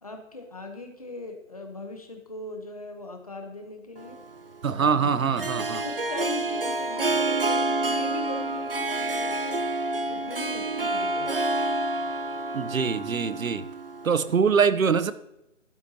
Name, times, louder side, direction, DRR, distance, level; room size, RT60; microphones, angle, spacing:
voice 1, 0.0-4.2 5.8-9.6 10.1-11.3, left 2 dB, 30° left, 4 dB, 1.0 m, -39 dB
Harp, 4.0-14.4, right 2 dB, 45° right, 0.5 m, -28 dB
voice 2, 4.6-5.8 12.5-13.7 14.0-15.1, right 6 dB, 80° right, 13 dB, 0.9 m, -23 dB
12.0 x 9.2 x 2.8 m, 0.85 s
hypercardioid pair, 175°, 41 cm